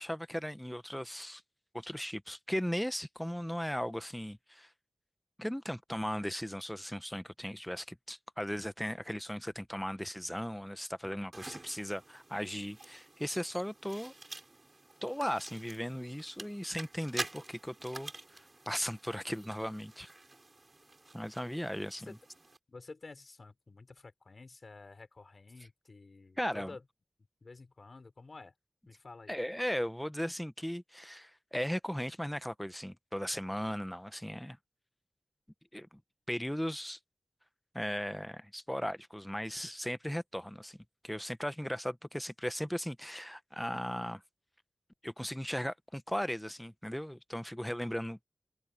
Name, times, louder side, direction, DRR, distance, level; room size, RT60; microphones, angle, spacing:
voice 1, 0.0-1.4 1.7-4.7 5.4-14.1 15.0-20.1 21.1-22.1 26.4-26.7 29.3-34.6 35.7-36.0 36.3-37.0 37.7-40.8 41.0-44.2 45.0-48.3, equal, 5° left, 0.9 m, -37 dB
sound 1, 11.3-22.6, right 2 dB, 40° right, 7.5 m, -48 dB
voice 2, 22.7-26.8 27.4-28.5 28.9-29.4, left 3 dB, 60° left, 4.1 m, -51 dB
open air
wide cardioid pair, 75°, 0 cm